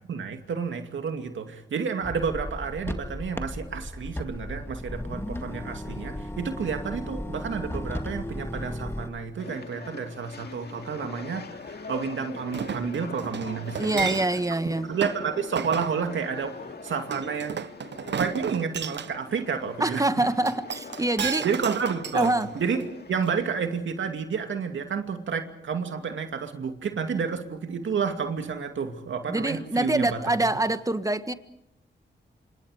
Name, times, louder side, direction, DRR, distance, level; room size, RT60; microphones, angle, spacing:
voice 1, 0.0-14.1 14.9-17.6 18.2-20.3 21.4-30.5, right 6 dB, 90° right, 6 dB, 2.5 m, -30 dB
sound 1, 2.0-9.1, left 1 dB, 10° left, 2.0 m, -35 dB
sound 2, 9.4-23.5, left 4 dB, 60° left, 2.3 m, -43 dB
Chink clink, 12.5-14.5 15.0-15.2 15.6-15.9 17.1-19.1 20.5-22.8 23.3-23.4, right 7 dB, 65° right, 0.8 m, -33 dB
voice 2, 13.8-14.9 19.8-21.5 22.1-22.5 29.3-31.3, right 2 dB, 15° right, 10 dB, 1.6 m, -25 dB
28.0 x 26.5 x 5.0 m, 0.77 s
cardioid pair, 65°, 19 cm